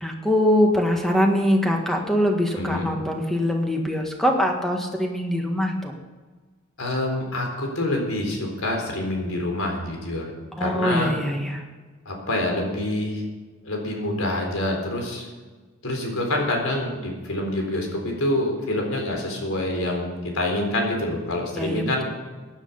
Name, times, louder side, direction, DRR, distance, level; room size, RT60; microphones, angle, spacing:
voice 1, 0.0-5.9 10.6-11.6 21.5-22.1, equal, ahead, 2 dB, 1.6 m, -23 dB
voice 2, 2.6-2.9 6.8-10.2 10.6-11.1 12.1-13.2 13.6-15.3 15.8-22.0, left 1 dB, 85° left, 2 dB, 4.0 m, -26 dB
15.5 x 10.0 x 5.4 m, 1.3 s
head